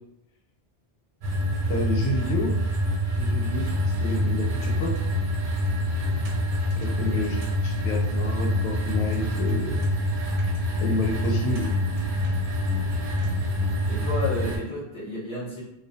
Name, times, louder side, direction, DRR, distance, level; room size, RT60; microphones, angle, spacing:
sound 1, 1.2-14.6, left 1 dB, 60° right, 0.7 m, -26 dB
voice 1, 1.7-2.5 3.2-4.9 6.8-9.8 10.8-11.7, left 2 dB, 85° left, 0 dB, 0.8 m, -29 dB
voice 2, 6.9-7.2 13.9-15.6, left 1 dB, 5° left, -7 dB, 0.7 m, -32 dB
2.2 x 2.1 x 2.7 m, 0.85 s
omnidirectional pair, 1.1 m